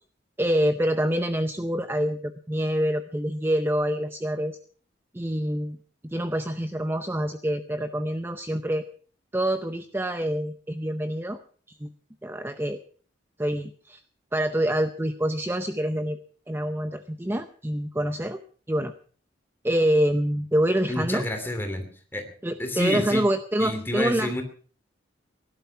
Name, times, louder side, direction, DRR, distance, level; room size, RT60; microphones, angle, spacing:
voice 1, 0.4-4.6 5.1-5.8 6.0-8.9 9.3-11.4 11.7-11.9 12.2-12.8 13.4-14.0 14.3-16.2 16.5-18.4 18.7-18.9 19.6-21.2 22.4-24.3, equal, 10° right, 9 dB, 0.6 m, -26 dB
voice 2, 20.9-21.9 22.1-22.2 22.6-23.2 23.6-24.4, left 1 dB, 10° left, 5 dB, 2.8 m, -28 dB
17.5 x 11.5 x 5.8 m, 0.43 s
head